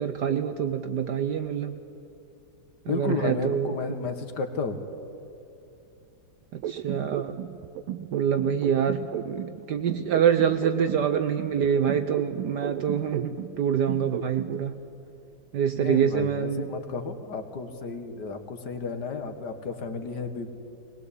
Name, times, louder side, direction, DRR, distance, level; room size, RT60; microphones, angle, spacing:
voice 1, 0.0-1.8 2.9-3.7 6.5-7.4 8.1-14.8 15.5-16.7, right 8 dB, 65° right, 9 dB, 1.2 m, -26 dB
voice 2, 2.9-4.8 15.7-20.5, left 4 dB, 50° left, 8 dB, 2.0 m, -32 dB
sound 1, 6.6-9.6 9.9-13.6 13.9-14.6, right 11 dB, 80° right, 1.6 m, -34 dB
21.5 x 21.0 x 8.5 m, 3.0 s
omnidirectional pair, 2.4 m